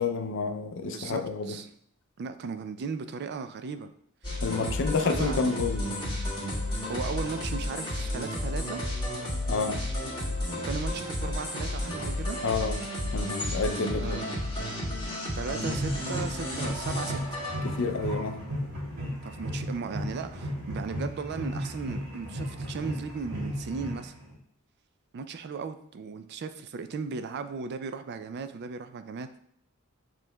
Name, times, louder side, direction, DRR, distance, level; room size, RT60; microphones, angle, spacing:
voice 1, 0.0-1.6 4.4-6.2 9.5-9.8 12.4-12.8 13.1-14.2 17.6-18.4, left 4 dB, 60° left, 7 dB, 0.5 m, -29 dB
voice 2, 0.9-1.7 2.2-3.9 4.6-5.7 6.8-8.8 10.6-12.4 14.0-14.5 15.4-17.4 19.2-24.1 25.1-29.3, right 5 dB, 50° right, 10 dB, 0.3 m, -36 dB
sound 1, 4.2-18.1, left 1 dB, 20° left, 1.6 m, -32 dB
sound 2, 15.6-24.3, equal, 85° right, 1.8 m, -35 dB
7.3 x 3.1 x 2.2 m, 0.64 s
head